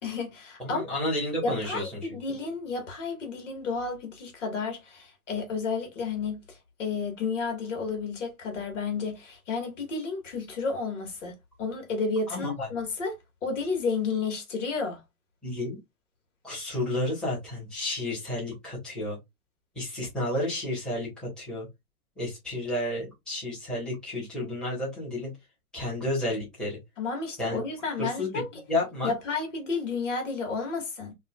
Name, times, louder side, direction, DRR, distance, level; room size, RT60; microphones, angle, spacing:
voice 1, 0.0-0.8 1.4-13.2 13.4-15.0 27.0-28.5 29.0-31.1, left 4 dB, 55° left, 1.9 m, -31 dB
voice 2, 0.6-2.2 12.3-12.7 15.4-15.8 16.4-19.2 19.7-21.7 22.2-25.3 25.7-26.8 27.4-27.6 28.0-29.1, left 1 dB, ahead, 1.5 m, -31 dB
5.4 x 2.7 x 2.4 m
hypercardioid pair, 165°, 43 cm